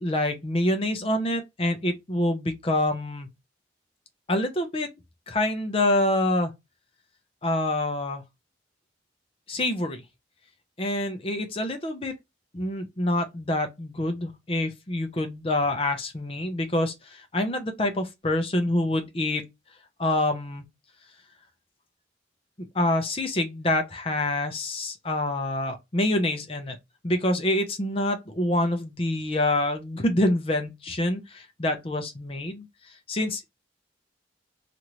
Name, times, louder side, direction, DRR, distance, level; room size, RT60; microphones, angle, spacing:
voice 1, 0.0-3.3 4.3-4.9 5.3-6.5 7.4-8.2 9.5-10.0 10.8-12.1 12.5-19.5 20.0-20.6 22.6-26.8 27.0-32.7 33.1-33.5, left 1 dB, 30° left, 0.6 m, -26 dB
2.9 x 2.5 x 3.0 m
head